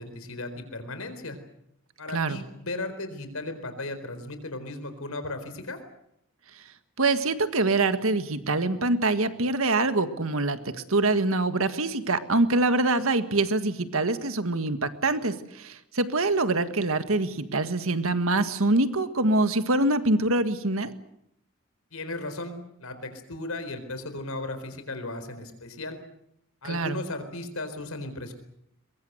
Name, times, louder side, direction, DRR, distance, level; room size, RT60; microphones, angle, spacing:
voice 1, 0.0-1.4 2.0-5.8 21.9-26.0 26.6-28.3, left 2 dB, 80° left, 9 dB, 4.2 m, -36 dB
voice 2, 7.0-10.6 10.9-20.9 26.6-27.0, right 2 dB, 75° right, 10 dB, 1.7 m, -24 dB
22.5 x 22.5 x 8.0 m, 0.79 s
head